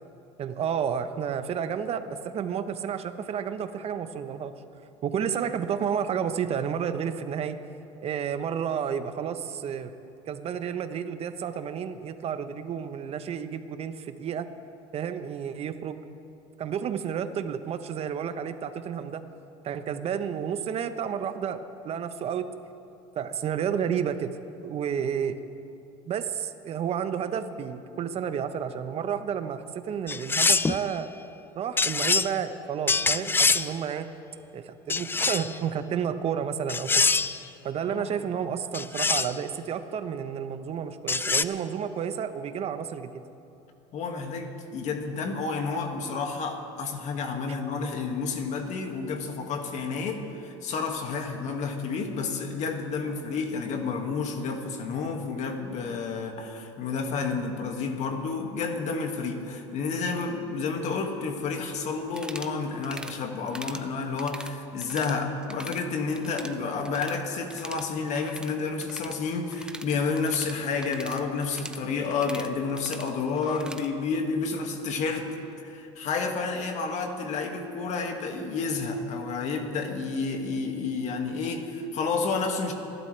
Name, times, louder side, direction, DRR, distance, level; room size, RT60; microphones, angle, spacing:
voice 1, 0.4-4.5 5.0-7.6 8.0-9.9 10.3-14.5 14.9-16.0 16.6-19.2 19.6-22.5 23.1-24.3 24.6-25.4 26.1-31.1 31.5-34.1 34.5-37.0 37.6-43.2, right 8 dB, 40° right, 10 dB, 1.1 m, -31 dB
sound 1, 30.1-30.8 31.8-32.3 32.9-33.7 34.9-35.6 36.7-37.4 38.7-39.4 41.1-41.4, left 4 dB, 15° left, 0.4 m, -24 dB
voice 2, 43.9-75.3 75.6-82.7, left 4 dB, 50° left, 3 dB, 2.1 m, -30 dB
sound 2, 62.1-62.6 62.8-63.2 63.5-63.9 64.2-65.2 65.4-65.8 66.1-67.2 67.5-73.9, right 1 dB, 5° right, 0.8 m, -42 dB
27.0 x 12.0 x 3.4 m, 2.7 s
hypercardioid pair, 90°, 16 cm